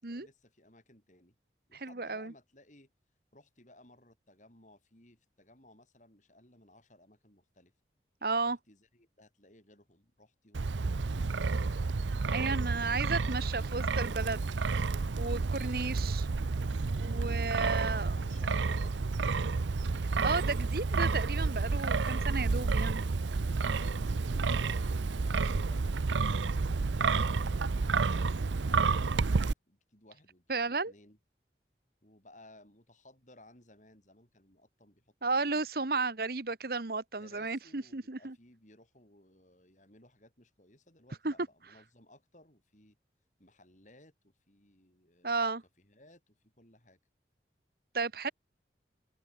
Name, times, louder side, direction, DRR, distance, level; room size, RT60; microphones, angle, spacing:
voice 1, 0.0-1.4 1.7-2.9 3.3-7.7 8.4-11.7 12.3-14.3 17.6-19.7 23.6-31.2 32.0-35.7 37.2-43.0 43.4-47.0, left 1 dB, 40° left, 8.0 m, -60 dB
voice 2, 1.8-2.3 8.2-8.6 12.3-14.5 15.2-16.3 17.0-18.1 20.2-23.0 30.5-30.9 35.2-38.3 41.2-41.3 45.2-45.6 47.9-48.3, right 3 dB, 55° right, 1.1 m, -33 dB
Wind, 10.5-29.5, right 4 dB, 90° right, 0.6 m, -30 dB
head